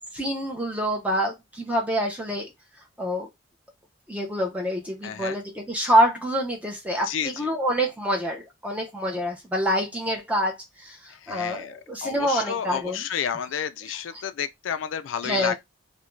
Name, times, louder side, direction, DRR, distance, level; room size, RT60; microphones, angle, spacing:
voice 1, 0.1-2.5 3.0-3.3 4.1-13.1 14.1-14.2 15.2-15.5, equal, 5° right, 0.6 m, -26 dB
voice 2, 5.0-5.4 7.0-7.5 11.1-15.5, left 8 dB, 70° left, 0.4 m, -31 dB
2.4 x 2.2 x 3.1 m
head